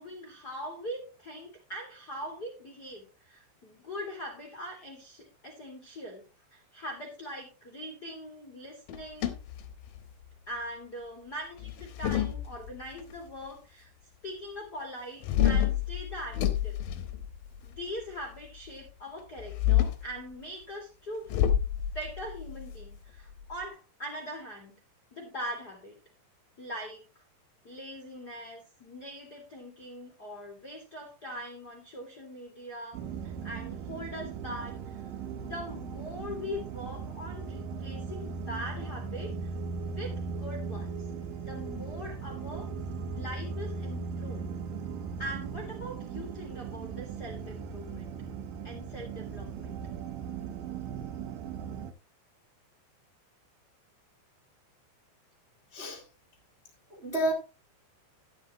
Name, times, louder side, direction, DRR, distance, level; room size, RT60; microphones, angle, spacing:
voice 1, 0.0-6.2 6.5-9.3 10.5-13.9 14.2-16.8 17.6-21.4 21.7-24.8 25.1-25.9 26.6-27.0 27.6-35.0 35.4-39.5 39.9-41.0 41.4-42.7 43.1-44.5 45.2-48.2 48.6-49.8, equal, 40° left, 1.4 m, -42 dB
sound 1, 8.9-10.3 11.6-13.0 15.2-17.8 19.4-20.1 21.3-23.7, left 11 dB, 70° left, 2.4 m, -29 dB
sound 2, 32.9-51.9, right 5 dB, 85° right, 2.0 m, -38 dB
voice 2, 55.7-56.0 56.9-57.3, right 1 dB, 30° right, 1.2 m, -30 dB
12.0 x 11.0 x 3.0 m
omnidirectional pair, 5.4 m